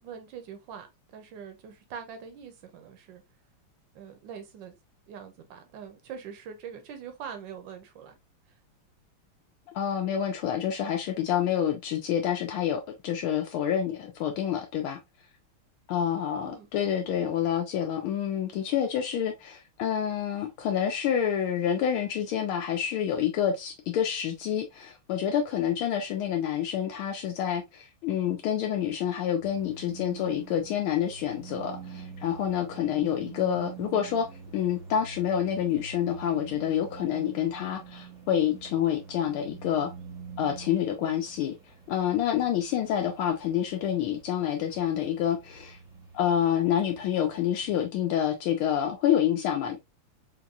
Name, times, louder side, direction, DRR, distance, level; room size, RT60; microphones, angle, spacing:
voice 1, 0.0-3.2 3.9-4.7 5.1-8.2 16.4-16.7, right 7 dB, 70° right, 1.2 m, -43 dB
voice 2, 9.7-15.0 15.9-34.3 34.5-39.9 40.4-41.5 41.9-45.8 46.1-49.8, left 9 dB, 75° left, 1.4 m, -28 dB
sound 1, 29.4-47.8, right 6 dB, 10° right, 1.0 m, -46 dB
4.3 x 2.9 x 2.3 m
omnidirectional pair, 2.4 m